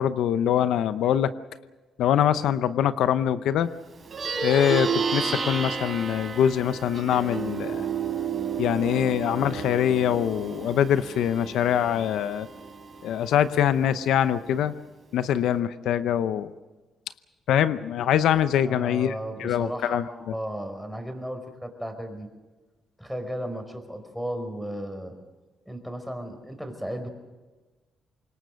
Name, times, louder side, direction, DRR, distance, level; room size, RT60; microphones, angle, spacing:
voice 1, 0.0-1.3 2.0-3.7 4.4-7.9 8.6-12.5 13.0-14.7 15.1-16.5 17.5-19.1 19.4-20.0, left 10 dB, 80° left, 12 dB, 0.7 m, -23 dB
Plucked string instrument, 4.0-13.7, right 5 dB, 40° right, 4.8 m, -32 dB
voice 2, 18.6-22.3 23.0-25.1 25.7-27.1, equal, ahead, 5 dB, 4.8 m, -35 dB
25.5 x 22.0 x 6.5 m, 1.2 s
cardioid pair, 90°, 0 cm